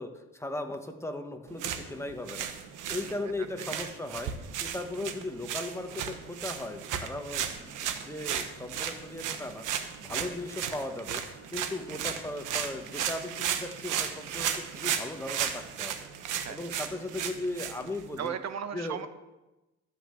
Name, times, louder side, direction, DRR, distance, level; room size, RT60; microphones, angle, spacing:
voice 1, 0.0-2.5 2.9-4.3 4.6-9.6 10.0-11.2 11.5-16.0 16.5-18.3 18.7-19.0, left 2 dB, 10° left, 4 dB, 1.5 m, -37 dB
sound 1, 1.5-18.3, right 8 dB, 90° right, 1.2 m, -35 dB
voice 2, 3.0-3.3 3.6-3.7 10.1-10.2 16.4-16.6 18.2-19.1, right 8 dB, 60° right, 10 dB, 1.1 m, -37 dB
13.0 x 5.9 x 7.8 m, 1.0 s
cardioid pair, 90°, 30 cm